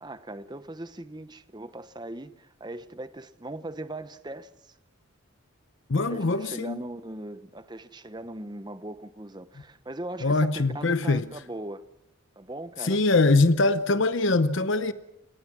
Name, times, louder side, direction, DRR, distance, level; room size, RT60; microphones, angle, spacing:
voice 1, 0.0-4.7 6.0-11.8 12.4-13.0, right 1 dB, 20° right, 0.9 m, -39 dB
voice 2, 5.9-6.8 10.2-11.3 12.8-14.9, left 3 dB, 60° left, 0.8 m, -23 dB
30.0 x 19.5 x 6.2 m
head